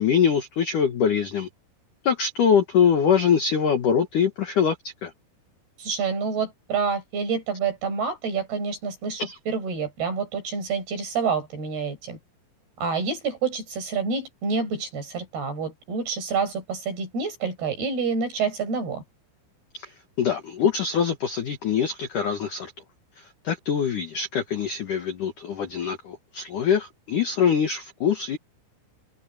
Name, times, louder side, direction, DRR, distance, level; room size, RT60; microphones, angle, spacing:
voice 1, 0.0-1.5 2.0-4.8 5.0-5.1 9.2-9.4 19.7-22.7 23.2-28.4, left 7 dB, 60° left, 2.2 m, -23 dB
voice 2, 5.8-12.2 12.8-19.0, right 5 dB, 50° right, 8.7 m, -28 dB
open air
omnidirectional pair, 5.9 m